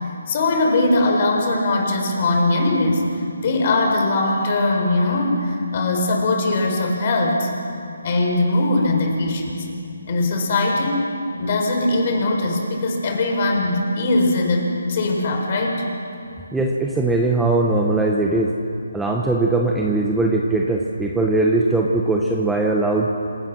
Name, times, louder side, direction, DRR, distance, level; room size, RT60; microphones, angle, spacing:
voice 1, 0.3-3.1 3.4-7.5 8.0-9.7 10.1-11.1 11.4-15.8, left 2 dB, 40° left, 1 dB, 4.7 m, -20 dB
voice 2, 16.5-18.5 18.9-23.1, right 2 dB, 5° right, 0 dB, 1.1 m, -20 dB
27.0 x 17.0 x 6.0 m, 2.7 s
hypercardioid pair, 160°, 0 cm